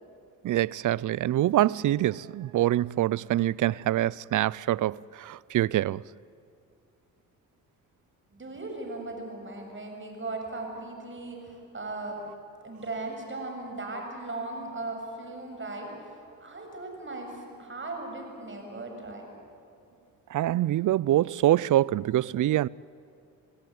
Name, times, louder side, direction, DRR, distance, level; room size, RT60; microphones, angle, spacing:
voice 1, 0.4-6.0 20.3-22.7, right 13 dB, 60° right, 0.5 m, -25 dB
voice 2, 8.3-12.2 12.6-19.3, right 2 dB, 35° right, 7.2 m, -38 dB
28.5 x 17.0 x 9.4 m
supercardioid pair, 70°, 35 cm